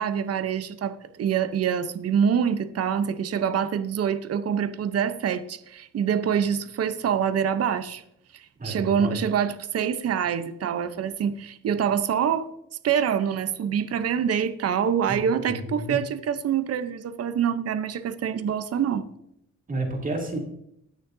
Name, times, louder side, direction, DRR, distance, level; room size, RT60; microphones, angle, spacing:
voice 1, 0.0-8.0 8.3-12.5 12.8-19.1, right 8 dB, 55° right, 0.9 m, -25 dB
voice 2, 8.6-9.2 15.1-16.0 19.7-20.4, right 2 dB, 25° right, 2.8 m, -31 dB
19.0 x 6.5 x 2.7 m
cardioid pair, 90°, 30 cm